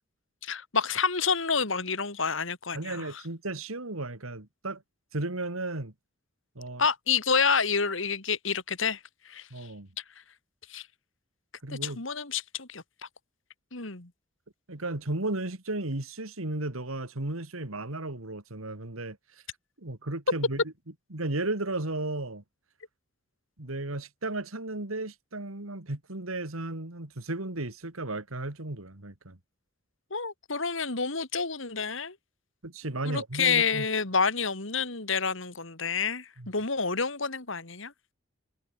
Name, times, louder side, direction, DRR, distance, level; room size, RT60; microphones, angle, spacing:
voice 1, 0.4-3.1 6.8-9.0 9.3-9.5 10.7-10.9 11.7-12.8 13.7-14.1 30.1-32.1 33.0-38.1, left 5 dB, 70° left, 2.8 m, -28 dB
voice 2, 2.7-4.8 5.1-5.9 6.6-6.9 9.5-9.9 11.6-12.0 14.7-19.2 19.8-20.6 21.1-22.4 23.6-29.4 32.6-33.9 36.4-36.5, right 2 dB, 85° right, 2.5 m, -34 dB
head